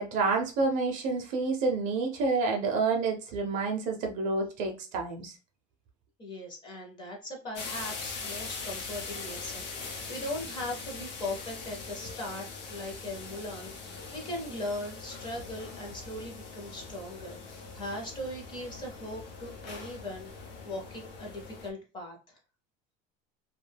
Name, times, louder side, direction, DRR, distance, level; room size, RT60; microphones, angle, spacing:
voice 1, 0.0-5.3, right 3 dB, 35° right, 0.5 m, -29 dB
voice 2, 6.2-22.4, left 1 dB, 20° left, 0.6 m, -39 dB
sound 1, 7.6-21.7, left 4 dB, 85° left, 0.7 m, -42 dB
2.3 x 2.2 x 3.2 m
cardioid pair, 180°, 21 cm